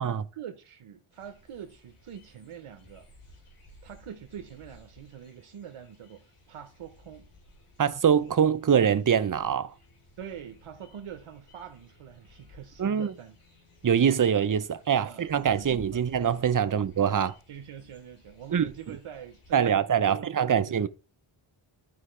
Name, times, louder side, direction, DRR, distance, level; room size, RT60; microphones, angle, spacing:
voice 1, 0.0-3.1 3.8-7.3 10.2-13.4 15.0-15.3 15.6-16.1 16.6-16.9 17.5-20.9, right 8 dB, 85° right, 1.0 m, -44 dB
sound 1, 1.1-19.7, left 1 dB, 90° left, 4.0 m, -56 dB
voice 2, 7.8-9.7 12.8-13.1 13.8-17.3 18.5-18.6 19.5-20.9, right 8 dB, 40° right, 0.7 m, -24 dB
12.5 x 4.7 x 3.2 m
cardioid pair, 55°, 49 cm